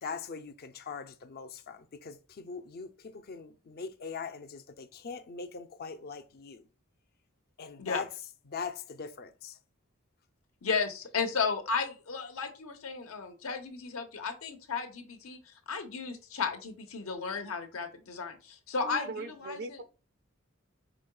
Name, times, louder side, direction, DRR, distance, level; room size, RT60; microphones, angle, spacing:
voice 1, 0.0-6.6 7.6-8.1 8.5-9.5, left 5 dB, 50° left, 0.5 m, -41 dB
voice 2, 10.6-15.4 15.7-19.8, left 5 dB, 85° left, 0.9 m, -34 dB
voice 3, 18.8-19.8, right 3 dB, 55° right, 0.5 m, -39 dB
5.0 x 3.7 x 2.3 m
head